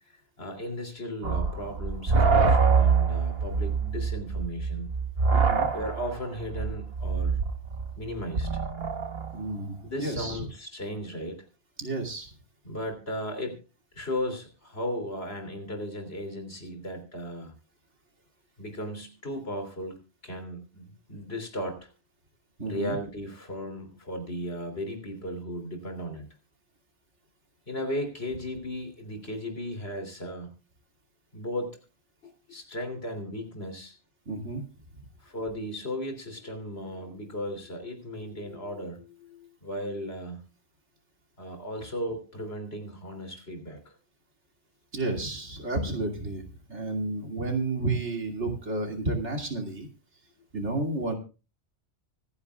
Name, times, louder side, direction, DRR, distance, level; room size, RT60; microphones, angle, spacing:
voice 1, 0.1-4.9 5.7-7.4 8.0-8.6 9.8-11.4 12.6-13.6 13.9-17.5 18.6-20.0 20.2-21.9 22.7-26.3 27.7-30.5 31.3-31.8 32.2-34.0 35.2-40.4 41.4-43.9, equal, 60° left, 6 dB, 3.4 m, -36 dB
sound 1, 1.2-9.4, right 5 dB, 60° right, 1.4 m, -25 dB
voice 2, 5.3-5.7 9.3-10.4 11.8-12.3 22.6-23.0 34.3-34.6 34.9-35.0 44.9-49.9 50.5-51.2, right 2 dB, 80° right, 2 dB, 3.0 m, -31 dB
24.5 x 9.7 x 2.4 m, 0.33 s
omnidirectional pair, 1.2 m